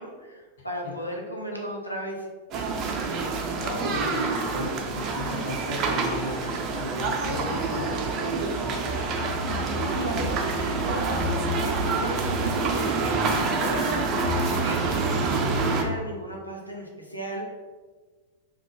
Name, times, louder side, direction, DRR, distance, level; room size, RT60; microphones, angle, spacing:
voice 1, 0.0-2.3 3.8-4.1 9.9-17.5, equal, 90° left, -1 dB, 0.4 m, -36 dB
sound 1, 2.5-15.8, right 3 dB, 35° right, 0.3 m, -27 dB
voice 2, 3.6-9.4, left 1 dB, 60° left, -3 dB, 0.7 m, -35 dB
2.2 x 2.1 x 2.9 m, 1.4 s
figure-of-eight pair, 90°, 0 cm